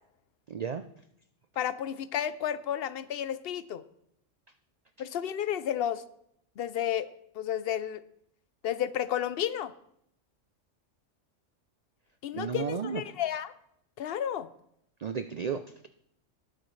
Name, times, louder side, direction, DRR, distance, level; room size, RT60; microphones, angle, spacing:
voice 1, 0.5-0.8 12.3-13.0 15.0-15.9, right 6 dB, 75° right, 9 dB, 0.3 m, -33 dB
voice 2, 1.6-3.8 5.0-6.0 6.6-7.1 7.3-8.0 8.6-9.7 12.2-13.5 14.0-14.5, left 10 dB, 60° left, 14 dB, 0.7 m, -32 dB
19.5 x 6.6 x 3.2 m, 0.73 s
omnidirectional pair, 1.3 m